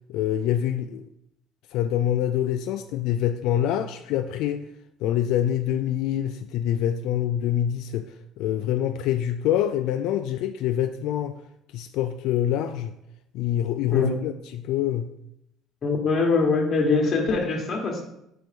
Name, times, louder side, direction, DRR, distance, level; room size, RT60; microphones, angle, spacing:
voice 1, 0.1-1.1 1.7-4.7 5.0-11.4 11.7-13.0 13.3-15.1, left 11 dB, 70° left, 7 dB, 0.3 m, -25 dB
voice 2, 15.8-18.0, left 4 dB, 30° left, 2 dB, 1.2 m, -23 dB
6.2 x 4.2 x 5.1 m, 0.81 s
cardioid pair, 160°, 0 cm